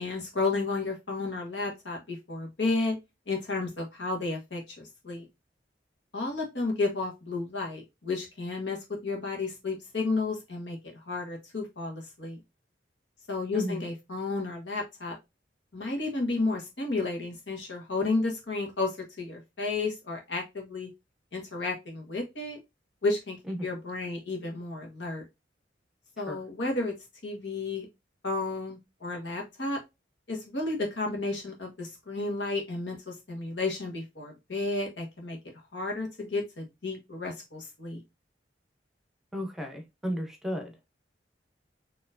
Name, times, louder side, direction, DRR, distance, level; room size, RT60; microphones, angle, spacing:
voice 1, 0.0-3.0 3.3-5.3 6.1-12.4 13.3-15.2 15.7-20.9 21.3-22.6 23.0-23.4 23.6-25.2 26.2-26.9 27.2-27.9 28.2-29.8 30.3-35.4 35.7-38.0, left 3 dB, 90° left, 1.4 m, -32 dB
voice 2, 39.3-40.7, equal, ahead, 0.7 m, -34 dB
4.4 x 2.9 x 2.5 m
head